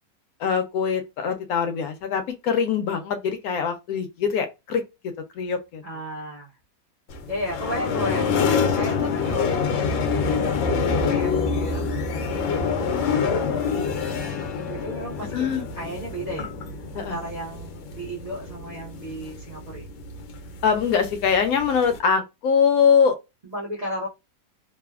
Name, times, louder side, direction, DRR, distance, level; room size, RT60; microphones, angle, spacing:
voice 1, 0.4-4.8 5.4-5.8 15.3-15.6 16.9-17.2 20.6-23.2, left 6 dB, 70° left, 0.8 m, -23 dB
voice 2, 5.8-6.6 7.3-8.3 8.7-16.5 16.9-19.9 23.4-24.1, equal, 65° right, 0.4 m, -35 dB
sound 1, 7.1-22.0, left 5 dB, 90° left, 1.3 m, -26 dB
3.2 x 2.0 x 2.3 m
omnidirectional pair, 2.0 m